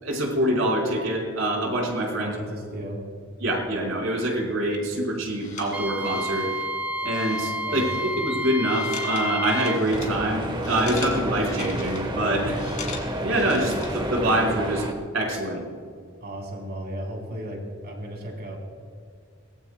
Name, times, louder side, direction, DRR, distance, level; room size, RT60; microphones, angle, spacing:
voice 1, 0.0-2.3 3.4-6.5 7.0-12.6 13.2-14.8 15.1-15.6, right 1 dB, 65° right, -1 dB, 4.4 m, -25 dB
voice 2, 2.2-3.0 7.6-7.9 13.6-13.7 16.2-18.6, equal, 50° right, 0 dB, 3.8 m, -35 dB
sound 1, 4.9-14.2, left 4 dB, 35° left, 2.5 m, -41 dB
Wind instrument woodwind instrument, 5.7-9.8, equal, 5° right, 0.4 m, -30 dB
sound 2, 9.9-14.9, right 1 dB, 20° right, 1.1 m, -30 dB
22.5 x 19.5 x 2.2 m, 2.1 s
head